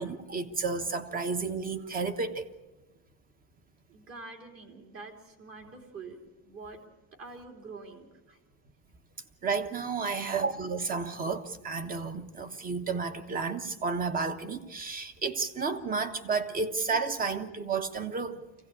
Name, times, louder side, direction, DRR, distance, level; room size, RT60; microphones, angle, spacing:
voice 1, 0.0-2.5 9.4-18.4, right 4 dB, 25° right, 1.2 m, -32 dB
voice 2, 3.9-6.8 7.2-8.4 15.8-15.9 16.6-16.7, right 3 dB, 40° right, 3.2 m, -46 dB
24.5 x 17.0 x 8.5 m
cardioid pair, 170°, 33 cm